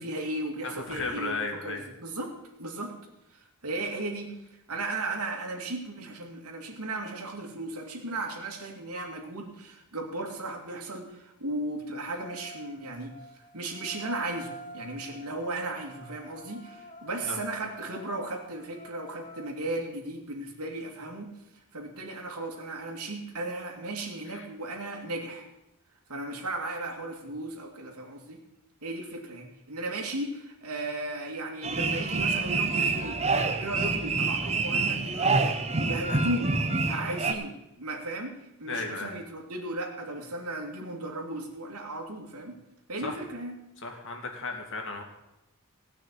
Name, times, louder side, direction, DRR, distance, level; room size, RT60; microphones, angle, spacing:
voice 1, 0.0-2.3 2.6-2.9 3.3-4.3 4.7-13.1 13.5-21.3 21.7-25.5 26.1-28.4 28.8-36.5 36.9-38.3 38.6-42.6 42.9-43.6, right 2 dB, 85° right, 2 dB, 2.5 m, -36 dB
voice 2, 0.6-1.8 17.2-17.4 24.3-24.5 38.7-39.2 43.0-43.2 43.8-45.0, left 3 dB, 60° left, 3 dB, 2.4 m, -35 dB
sound 1, 8.9-9.2 12.1-19.5, left 2 dB, 35° left, 1.1 m, -47 dB
sound 2, 31.6-37.3, right 3 dB, 30° right, 1.0 m, -27 dB
17.5 x 6.2 x 8.4 m, 0.91 s
head